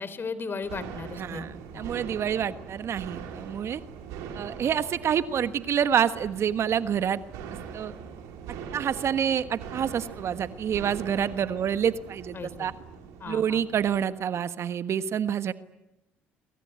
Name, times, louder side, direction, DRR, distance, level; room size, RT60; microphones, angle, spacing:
voice 1, 0.0-1.5 1.7-1.9 12.3-12.7 13.2-13.6, left 4 dB, 40° left, 15 dB, 3.9 m, -36 dB
sound 1, 0.6-14.1, right 6 dB, 75° right, 4.7 m, -42 dB
voice 2, 1.1-3.8 4.3-7.2 7.7-7.9 8.7-12.7 13.3-15.5, right 8 dB, 55° right, 12 dB, 1.4 m, -27 dB
27.0 x 24.0 x 9.3 m, 0.92 s
hypercardioid pair, 60°, 6 cm